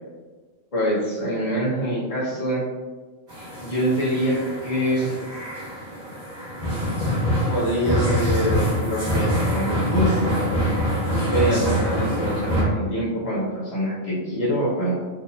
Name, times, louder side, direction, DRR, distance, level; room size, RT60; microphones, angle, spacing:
voice 1, 0.7-2.6 3.4-5.2 7.5-10.2 11.3-15.0, equal, 30° left, -7 dB, 1.0 m, -25 dB
sound 1, 3.3-12.6, equal, 40° right, 1.3 m, -25 dB
3.6 x 2.7 x 2.8 m, 1.3 s
omnidirectional pair, 1.3 m